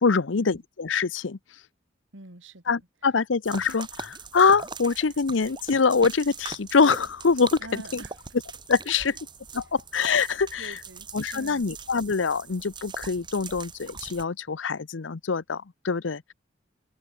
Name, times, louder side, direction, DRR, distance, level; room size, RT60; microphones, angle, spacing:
voice 1, 0.0-1.4 2.7-8.0 8.7-9.1 9.5-10.7 11.1-16.2, left 5 dB, 80° left, 0.7 m, -24 dB
voice 2, 2.1-2.8 7.6-8.2 8.9-9.2 10.6-11.7, right 2 dB, 80° right, 3.2 m, -45 dB
sound 1, 3.4-14.2, right 5 dB, 25° right, 1.2 m, -41 dB
open air
head